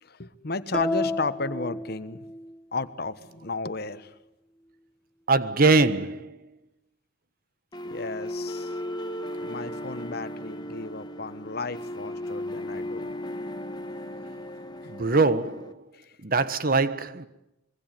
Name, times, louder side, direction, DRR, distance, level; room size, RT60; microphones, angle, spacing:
voice 1, 0.0-2.2 2.7-4.1 7.8-8.7 9.4-13.1, left 3 dB, 55° left, 1.3 m, -33 dB
sound 1, 0.7-2.5, left 2 dB, 5° left, 1.2 m, -30 dB
voice 2, 5.3-6.4 14.9-15.8 16.2-17.3, right 3 dB, 50° right, 1.2 m, -22 dB
sound 2, 7.7-15.7, left 1 dB, 25° left, 1.2 m, -36 dB
25.5 x 22.5 x 9.2 m
head